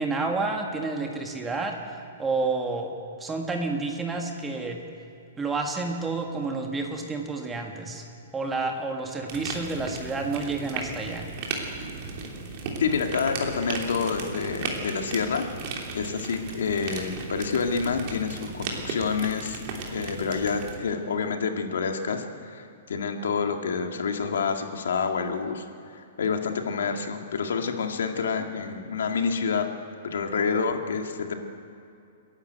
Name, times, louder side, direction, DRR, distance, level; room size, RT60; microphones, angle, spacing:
voice 1, 0.0-2.9 3.2-4.8 5.4-8.0 8.3-11.3, right 3 dB, 10° right, 2 dB, 1.8 m, -30 dB
sound 1, 9.3-20.8, right 4 dB, 40° right, 3.0 m, -36 dB
voice 2, 12.8-15.4 15.9-19.6 19.9-25.6 25.9-29.7 30.0-31.3, left 5 dB, 85° left, 4 dB, 2.0 m, -28 dB
28.5 x 11.0 x 8.0 m, 2.6 s
hypercardioid pair, 165°, 0 cm